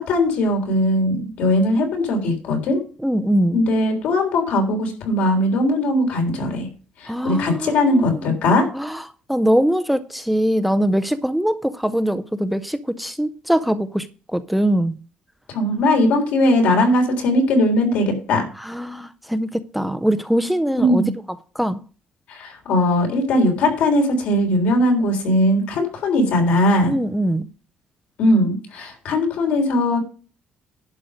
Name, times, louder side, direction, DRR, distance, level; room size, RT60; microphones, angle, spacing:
voice 1, 0.0-2.8 3.5-6.7 7.0-8.6 15.5-18.4 20.8-21.1 22.3-26.9 28.2-30.0, left 1 dB, 70° left, 3.6 m, -19 dB
voice 2, 3.0-3.6 7.1-8.4 8.7-9.0 9.3-14.1 14.3-15.0 18.6-21.0 21.6-21.8 26.9-27.5, equal, ahead, 0.4 m, -22 dB
11.0 x 5.0 x 6.4 m
cardioid pair, 175°, 3 cm